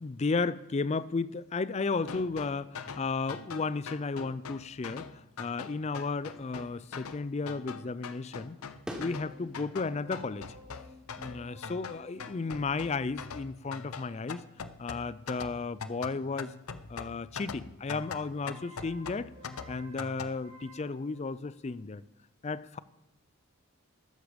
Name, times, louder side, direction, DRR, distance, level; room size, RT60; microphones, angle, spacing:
voice 1, 0.0-8.6 9.0-10.5 11.2-14.4 14.8-16.5 16.9-19.3 19.7-22.0 22.4-22.8, left 4 dB, 30° left, 18 dB, 0.4 m, -34 dB
sound 1, 2.0-20.3, left 5 dB, 80° left, 0.7 m, -43 dB
sound 2, 8.1-16.0, equal, 5° right, 1.4 m, -51 dB
sound 3, 9.2-14.5 17.9-21.8, left 1 dB, 65° right, 4.9 m, -55 dB
13.0 x 9.8 x 5.2 m, 0.93 s
head